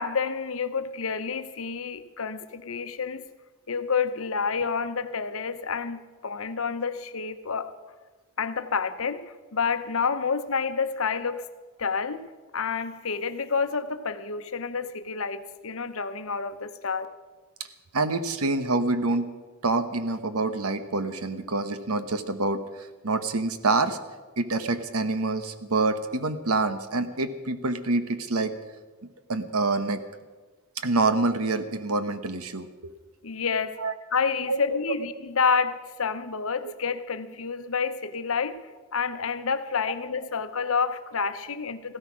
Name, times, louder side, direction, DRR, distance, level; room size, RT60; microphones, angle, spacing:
voice 1, 0.0-3.2 3.7-7.7 8.4-11.4 11.8-12.2 12.5-17.1 33.2-33.8 34.1-38.5 38.9-42.0, left 5 dB, 65° left, 10 dB, 0.8 m, -29 dB
voice 2, 17.9-19.3 19.6-24.0 24.4-28.5 29.3-30.0 30.8-32.9 33.8-33.9 34.5-34.8, right 3 dB, 80° right, 10 dB, 1.1 m, -26 dB
15.5 x 13.0 x 6.1 m, 1.3 s
head